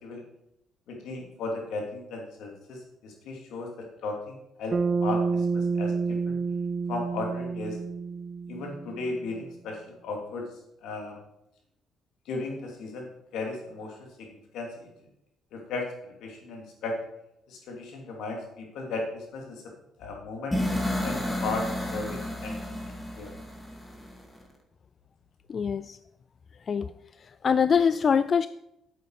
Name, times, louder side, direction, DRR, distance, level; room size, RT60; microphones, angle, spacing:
voice 1, 0.9-3.7 4.0-4.7 5.0-6.3 6.9-7.8 8.5-10.4 10.8-11.2 12.3-13.1 13.3-14.7 15.5-15.9 16.2-16.9 17.5-19.6 20.0-20.6 21.0-23.3, left 3 dB, 75° left, 1 dB, 2.8 m, -36 dB
Bass guitar, 4.7-9.1, right 4 dB, 30° right, 0.5 m, -29 dB
sound 1, 20.5-24.4, left 1 dB, 10° left, 2.3 m, -31 dB
voice 2, 25.5-26.0 26.7-26.9 27.4-28.5, left 6 dB, 45° left, 14 dB, 0.3 m, -23 dB
8.8 x 7.9 x 4.9 m, 0.82 s
cardioid pair, 80°, 0 cm